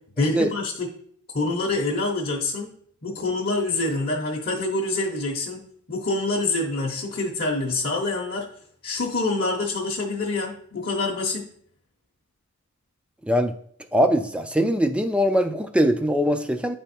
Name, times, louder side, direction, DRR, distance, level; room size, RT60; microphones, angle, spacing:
voice 1, 0.2-0.9 1.3-2.7 3.0-5.6 5.9-8.5 8.8-11.5, left 2 dB, 45° left, -1 dB, 0.8 m, -26 dB
voice 2, 13.9-16.8, equal, 5° right, 8 dB, 0.3 m, -21 dB
9.0 x 3.5 x 4.2 m, 0.62 s
head